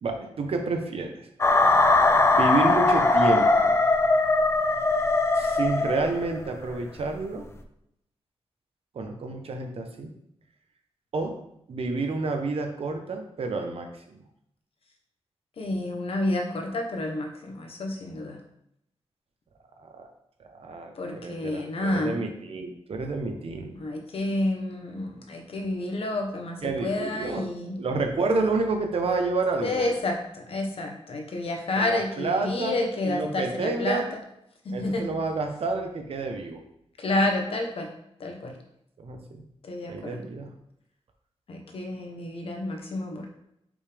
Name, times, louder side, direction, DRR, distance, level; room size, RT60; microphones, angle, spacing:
voice 1, 0.0-1.3 2.4-3.7 5.3-7.5 8.9-10.1 11.1-11.4 11.7-14.2 19.8-20.1 20.5-23.7 26.6-29.9 31.8-34.1 34.7-36.6 39.0-39.4 39.9-40.5, right 3 dB, 65° right, 4 dB, 0.9 m, -29 dB
sound 1, 1.4-6.4, left 2 dB, 25° left, 0.5 m, -21 dB
voice 2, 15.6-18.4 21.0-22.2 23.7-27.8 29.6-34.0 34.6-35.1 37.0-37.9 38.2-38.5 39.6-40.2 41.5-43.3, left 2 dB, 65° left, 3 dB, 1.0 m, -29 dB
5.3 x 5.1 x 3.4 m, 0.76 s
wide cardioid pair, 170°, 11 cm